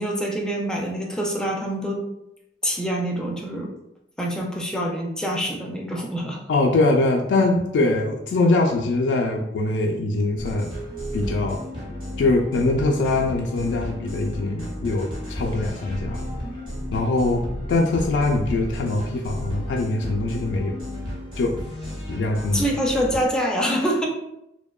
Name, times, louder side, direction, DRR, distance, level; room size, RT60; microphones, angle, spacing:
voice 1, 0.0-2.0 2.6-3.7 4.2-6.4 22.5-24.1, equal, 5° left, -2 dB, 0.4 m, -25 dB
voice 2, 6.5-10.7 11.1-11.6 12.2-16.3 16.9-20.8 21.4-21.5 22.1-22.6, left 2 dB, 90° left, 0 dB, 0.3 m, -22 dB
sound 1, 10.4-23.3, equal, 30° right, 0.9 m, -33 dB
2.7 x 2.1 x 2.2 m, 0.83 s
head